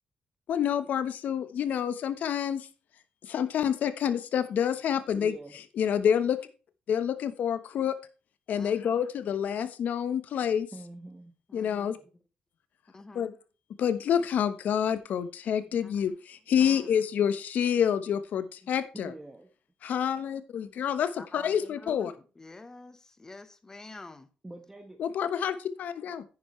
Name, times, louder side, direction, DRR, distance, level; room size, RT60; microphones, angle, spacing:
voice 1, 0.5-2.7 3.2-6.4 6.9-8.0 8.5-10.7 11.5-12.0 13.1-13.3 13.8-19.1 19.8-22.1 25.0-26.2, left 8 dB, 65° left, 1.1 m, -28 dB
voice 2, 5.1-5.5 10.7-11.3 11.9-12.0 18.9-19.5 24.4-25.0, right 2 dB, 10° right, 1.2 m, -45 dB
voice 3, 11.5-11.9 12.9-13.3 16.6-16.8 21.2-24.3, left 3 dB, 20° left, 1.2 m, -47 dB
10.5 x 9.5 x 3.2 m
cardioid pair, 130°, 3 cm